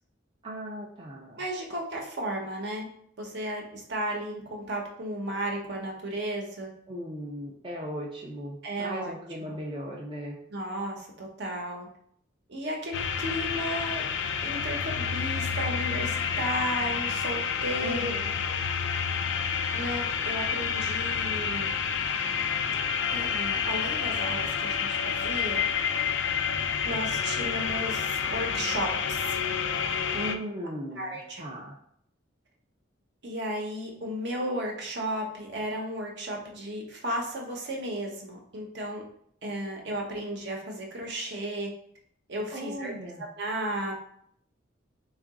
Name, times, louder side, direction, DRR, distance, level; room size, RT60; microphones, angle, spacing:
voice 1, 0.4-1.4 6.9-10.4 17.8-18.3 30.1-31.7 42.5-43.2, equal, 25° right, -2 dB, 0.4 m, -37 dB
voice 2, 1.4-2.9 3.2-6.7 8.6-9.1 9.4-9.6 10.5-11.9 12.5-14.0 14.4-18.1 18.5-18.6 19.7-21.7 23.1-25.6 26.8-29.4 30.9-31.4 33.2-39.0 39.4-41.7 42.3-42.9 43.4-44.1, right 1 dB, 60° right, 0 dB, 0.8 m, -34 dB
sound 1, 12.9-30.4, left 7 dB, 70° left, 0.3 m, -29 dB
3.7 x 2.4 x 3.6 m, 0.67 s
head